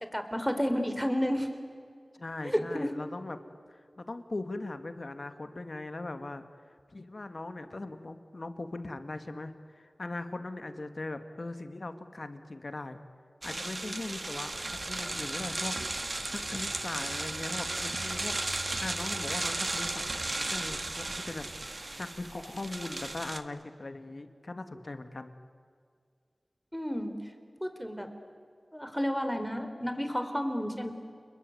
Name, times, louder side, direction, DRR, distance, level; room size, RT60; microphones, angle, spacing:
voice 1, 0.1-1.5 2.4-2.9 26.7-27.1 27.6-28.1 28.7-30.9, equal, 5° left, 7 dB, 4.0 m, -31 dB
voice 2, 2.2-3.4 3.7-6.4 6.9-13.0 13.4-25.3, left 2 dB, 60° left, 9 dB, 2.1 m, -40 dB
sound 1, 13.4-23.4, right 2 dB, 50° right, 1.6 m, -35 dB
sound 2, 14.5-21.7, right 1 dB, 25° right, 4.4 m, -49 dB
29.0 x 21.5 x 9.5 m, 2.1 s
wide cardioid pair, 45°, 0 cm